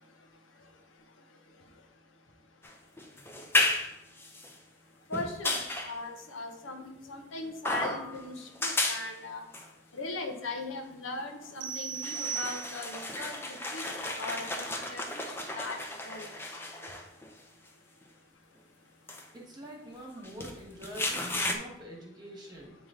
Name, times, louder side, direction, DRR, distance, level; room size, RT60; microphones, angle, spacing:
sound 1, 2.6-4.5 5.1-6.0 7.6-8.3 8.6-9.1 9.5-9.7 11.4-11.5 11.9-17.3 18.0-18.1 19.1-19.2 20.2-21.6, left 2 dB, 10° left, 0.5 m, -33 dB
voice 1, 5.1-9.4 9.9-13.4 13.7-15.2 15.5-15.8 16.0-16.3, left 2 dB, 80° left, 4 dB, 0.9 m, -39 dB
sound 2, 11.6-13.1, right 7 dB, 70° right, 0.6 m, -37 dB
voice 2, 19.3-22.8, right 1 dB, 20° right, -2 dB, 1.4 m, -45 dB
9.0 x 3.0 x 3.7 m, 0.82 s
head